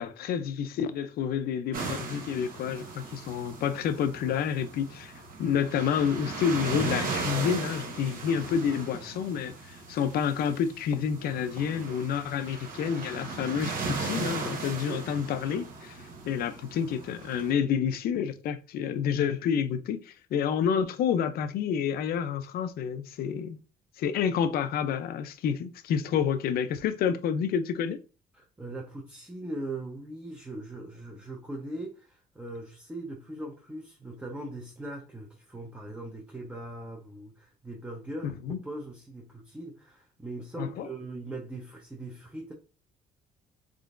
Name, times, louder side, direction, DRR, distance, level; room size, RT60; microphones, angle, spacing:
voice 1, 0.0-5.1 5.4-16.0 16.3-23.6 24.0-28.0 38.2-38.6 40.6-40.9, left 7 dB, 65° left, 0.5 m, -29 dB
sound 1, 1.7-17.5, right 4 dB, 55° right, 1.1 m, -37 dB
voice 2, 28.3-42.5, right 2 dB, 10° right, 0.8 m, -40 dB
3.7 x 3.3 x 2.5 m
cardioid pair, 110°, 17 cm